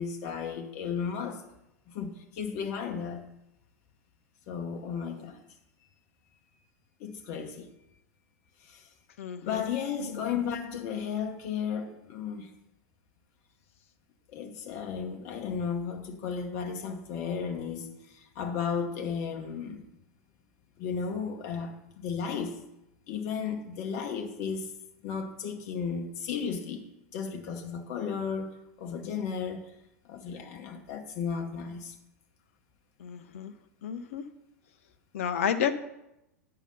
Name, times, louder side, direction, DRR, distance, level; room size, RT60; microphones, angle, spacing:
voice 1, 0.0-1.4 1.9-3.2 4.5-5.4 7.0-7.7 8.6-8.9 9.4-12.5 14.3-19.8 20.8-22.6 23.1-24.7 25.0-26.9 27.1-29.6 30.1-31.9, left 6 dB, 40° left, 4 dB, 1.0 m, -34 dB
voice 2, 9.2-9.6 33.0-33.5 33.8-34.2 35.1-35.7, left 8 dB, 55° left, 10 dB, 0.6 m, -31 dB
9.1 x 5.6 x 5.4 m, 0.89 s
figure-of-eight pair, 95°, 9 cm